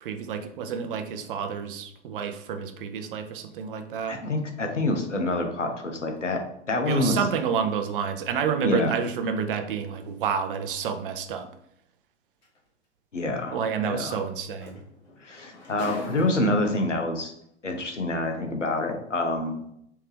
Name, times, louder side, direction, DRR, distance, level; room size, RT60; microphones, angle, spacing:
voice 1, 0.0-4.2 6.9-11.5 13.5-14.8, right 6 dB, 50° right, 7 dB, 0.5 m, -29 dB
voice 2, 4.1-6.4 6.7-7.2 8.6-9.0 13.1-14.2 15.2-17.3 17.6-19.6, left 2 dB, 90° left, 3 dB, 0.7 m, -27 dB
sound 1, 12.4-12.6 14.3-14.4 14.6-16.9 17.8-17.9, left 2 dB, 60° left, 1.5 m, -41 dB
3.4 x 2.8 x 3.1 m, 0.72 s
figure-of-eight pair, 100°, 35 cm